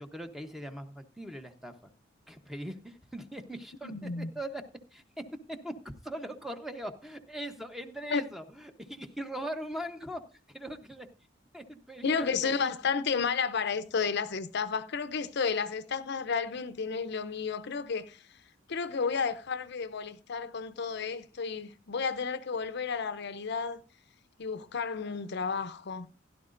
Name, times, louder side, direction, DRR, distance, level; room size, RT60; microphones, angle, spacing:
voice 1, 0.0-1.9 2.3-4.6 4.9-11.1 11.5-12.7, right 1 dB, ahead, 0.8 m, -41 dB
voice 2, 3.8-4.3 8.1-8.2 12.0-18.4 18.7-23.8 24.4-26.1, left 5 dB, 60° left, 0.6 m, -32 dB
16.0 x 11.5 x 2.5 m
head